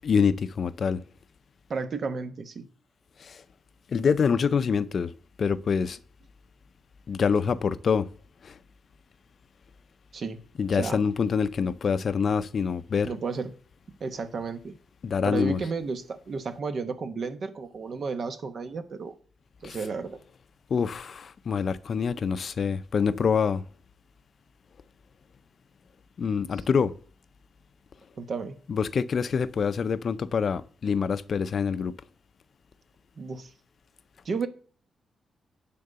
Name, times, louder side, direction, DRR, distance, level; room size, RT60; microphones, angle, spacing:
voice 1, 0.0-1.0 3.2-3.4 3.9-5.1 5.4-6.0 7.1-8.1 8.4-8.6 10.6-13.1 15.0-15.6 19.6-19.8 20.7-23.6 26.2-26.9 28.7-31.9, left 6 dB, 55° left, 0.5 m, -25 dB
voice 2, 1.7-2.7 10.1-10.4 10.8-11.0 13.0-13.5 14.0-14.8 15.2-19.1 19.6-20.2 26.5-26.6 28.2-28.6 33.2-33.5 34.2-34.5, right 4 dB, 55° right, 1.1 m, -32 dB
10.5 x 3.8 x 6.7 m
cardioid pair, 110°, 0 cm